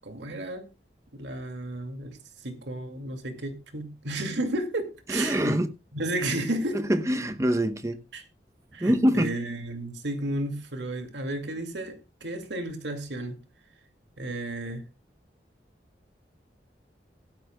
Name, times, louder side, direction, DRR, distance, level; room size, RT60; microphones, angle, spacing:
voice 1, 0.0-0.7 1.1-2.2 2.4-5.6 5.9-6.9 8.1-8.2 8.7-13.4 14.2-14.8, right 1 dB, 90° right, 2.4 m, -32 dB
voice 2, 5.1-5.7 6.7-8.0 8.8-9.3, equal, 15° right, 0.9 m, -24 dB
16.0 x 13.0 x 2.3 m
head